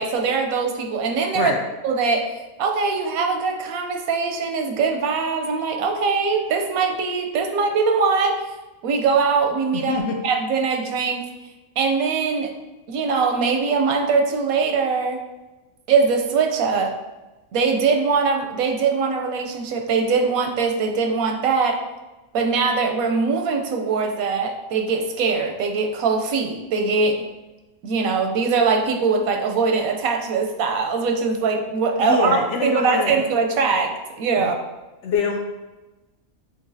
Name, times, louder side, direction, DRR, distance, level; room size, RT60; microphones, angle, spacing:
voice 1, 0.0-1.5 1.8-2.3 2.6-8.4 8.8-11.2 11.8-12.5 12.9-15.2 15.9-16.9 17.5-21.8 22.3-27.2 27.8-32.3 32.6-34.6, right 5 dB, 90° right, 3 dB, 1.1 m, -22 dB
voice 2, 9.7-10.2 32.0-33.2 34.4-34.5 35.0-35.4, left 3 dB, 65° left, 2 dB, 0.8 m, -24 dB
6.9 x 2.5 x 2.6 m, 1.1 s
omnidirectional pair, 1.5 m